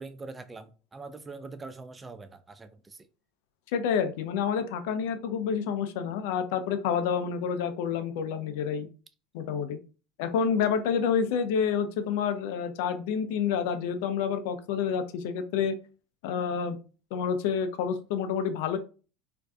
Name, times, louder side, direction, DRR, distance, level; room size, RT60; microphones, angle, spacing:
voice 1, 0.0-3.0, right 3 dB, 20° right, 0.3 m, -43 dB
voice 2, 3.7-8.9 9.3-9.8 10.2-15.7 16.2-16.8 17.1-18.8, left 7 dB, 75° left, 0.4 m, -28 dB
2.5 x 2.2 x 2.3 m
supercardioid pair, 105°, 0 cm